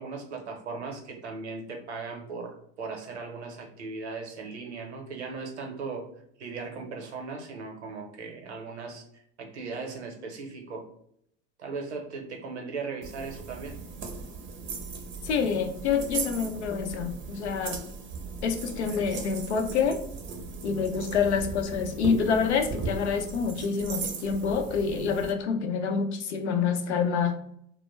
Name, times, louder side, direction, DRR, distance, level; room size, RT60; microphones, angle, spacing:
voice 1, 0.0-6.1 6.4-10.9 11.6-13.8, right 4 dB, 85° right, 3 dB, 0.8 m, -38 dB
sound 1, 13.0-25.3, right 4 dB, 35° right, 0.6 m, -38 dB
voice 2, 15.2-17.8 18.4-20.0 20.6-27.3, left 6 dB, 85° left, 6 dB, 0.5 m, -27 dB
2.2 x 2.1 x 3.1 m, 0.69 s
hypercardioid pair, 85°, 33 cm